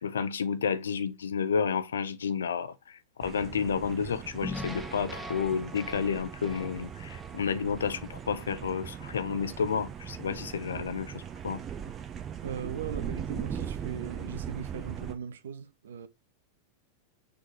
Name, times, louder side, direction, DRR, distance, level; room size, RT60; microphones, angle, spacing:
voice 1, 0.0-11.6, left 6 dB, 65° left, 0.7 m, -31 dB
sound 1, 3.2-15.2, right 8 dB, 25° right, 1.1 m, -40 dB
sound 2, 4.4-8.7, left 1 dB, 5° right, 1.4 m, -43 dB
voice 2, 12.4-16.1, right 7 dB, 65° right, 0.8 m, -39 dB
6.6 x 3.8 x 4.4 m
figure-of-eight pair, 90°, 0 cm